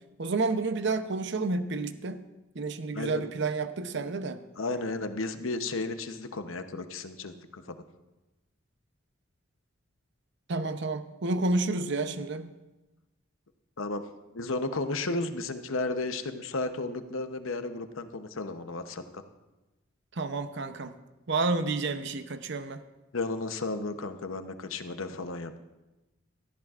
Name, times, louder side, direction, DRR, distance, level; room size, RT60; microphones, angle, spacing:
voice 1, 0.2-2.2 2.5-4.4 10.5-12.5 20.1-20.9 21.3-22.8, right 3 dB, 60° right, 10 dB, 0.7 m, -30 dB
voice 2, 2.9-3.3 4.6-7.8 13.8-14.0 14.3-19.0 23.1-25.6, left 3 dB, 75° left, 8 dB, 0.8 m, -33 dB
18.0 x 14.0 x 2.5 m, 1.1 s
head